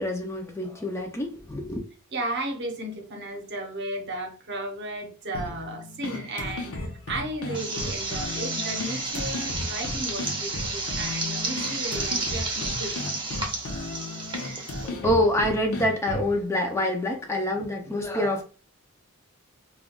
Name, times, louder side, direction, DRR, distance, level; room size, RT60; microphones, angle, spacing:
voice 1, 0.0-1.8 14.8-18.4, left 1 dB, 10° left, 0.4 m, -26 dB
voice 2, 2.1-12.9, right 1 dB, 55° right, 0.8 m, -34 dB
sound 1, 5.3-16.4, left 2 dB, 65° left, 0.7 m, -35 dB
sound 2, 7.5-14.9, right 3 dB, 20° right, 0.7 m, -31 dB
2.3 x 2.2 x 3.7 m
head